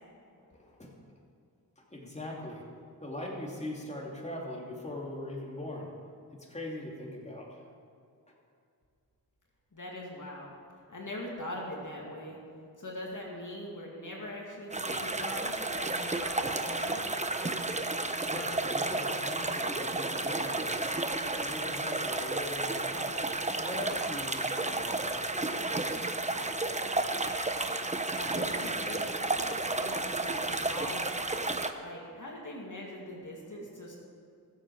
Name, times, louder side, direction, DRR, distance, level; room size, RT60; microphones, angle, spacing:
voice 1, 0.4-0.9 1.9-2.6 3.0-5.9 6.3-7.6 18.2-20.9 21.2-25.8, left 1 dB, 15° left, -2 dB, 2.9 m, -41 dB
voice 2, 9.7-10.5 10.9-12.4 12.8-17.0 28.2-31.4 31.8-34.0, left 1 dB, 50° left, -2 dB, 2.6 m, -42 dB
sound 1, 14.7-31.7, right 2 dB, 15° right, 0.9 m, -32 dB
21.0 x 7.8 x 4.9 m, 2.5 s
cardioid pair, 50°, 40 cm